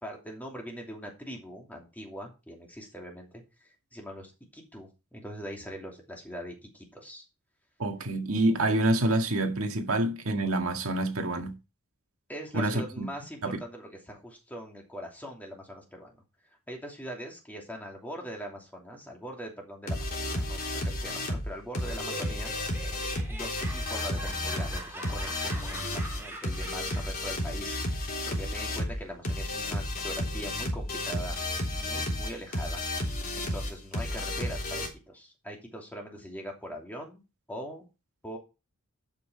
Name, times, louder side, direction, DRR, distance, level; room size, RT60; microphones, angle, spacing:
voice 1, 0.0-7.2 12.3-16.1 16.7-22.5 23.3-32.8 33.4-37.2 37.5-37.9 38.2-38.4, equal, 10° left, 2.8 m, -42 dB
voice 2, 7.8-11.5 12.5-13.1 13.4-13.6, right 1 dB, 70° right, 1.9 m, -27 dB
sound 1, 19.9-34.9, left 1 dB, 45° left, 3.6 m, -32 dB
Laughter, 21.8-27.3, right 1 dB, 10° right, 2.6 m, -43 dB
12.5 x 6.1 x 4.5 m
head